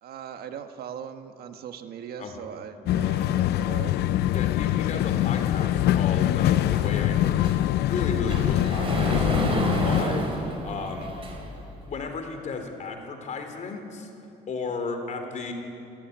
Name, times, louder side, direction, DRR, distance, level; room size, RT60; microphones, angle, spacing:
voice 1, 0.0-4.0, right 8 dB, 65° right, 7 dB, 1.5 m, -39 dB
sound 1, 2.9-10.0, left 13 dB, 75° left, 0.6 m, -24 dB
voice 2, 4.3-7.5 7.8-9.6 9.8-10.3 10.6-11.1 11.9-14.1 14.5-15.5, left 4 dB, 45° left, 5 dB, 3.7 m, -34 dB
Sliding door, 6.7-11.7, right 1 dB, 35° right, 4.5 m, -30 dB
28.0 x 14.0 x 9.4 m, 2.8 s
cardioid pair, 110°, 17 cm